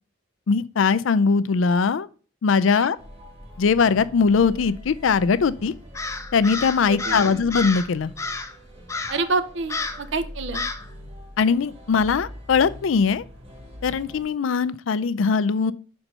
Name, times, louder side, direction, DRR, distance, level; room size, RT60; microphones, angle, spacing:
voice 1, 0.5-2.1 2.4-3.0 3.6-5.7 6.3-8.1 11.4-13.2 13.8-15.7, left 5 dB, 75° left, 0.4 m, -20 dB
sound 1, 3.0-14.2, equal, 30° right, 1.5 m, -42 dB
Crow, 5.9-7.9 8.2-8.6 8.9-9.3 9.7-10.1 10.5-10.9, left 3 dB, 15° left, 0.5 m, -30 dB
voice 2, 6.9-7.5 9.1-10.6, right 3 dB, 65° right, 0.6 m, -28 dB
5.6 x 4.4 x 5.2 m
head